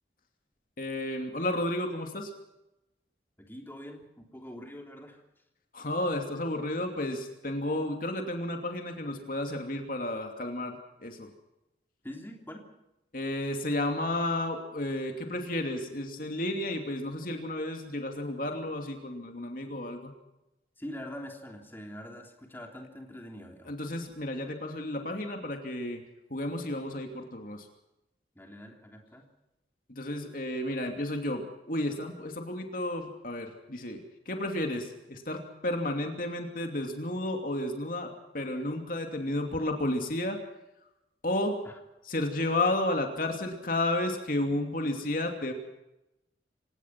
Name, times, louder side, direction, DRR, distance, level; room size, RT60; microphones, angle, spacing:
voice 1, 0.8-2.3 5.7-11.3 13.1-20.1 23.7-26.0 26.3-27.7 29.9-40.4 41.2-41.6 42.1-45.5, left 1 dB, 50° left, 4 dB, 2.8 m, -32 dB
voice 2, 3.4-5.2 12.0-12.7 20.8-23.8 28.4-29.3 41.6-41.8, equal, 10° left, 2 dB, 3.4 m, -44 dB
27.0 x 18.0 x 6.0 m, 0.91 s
head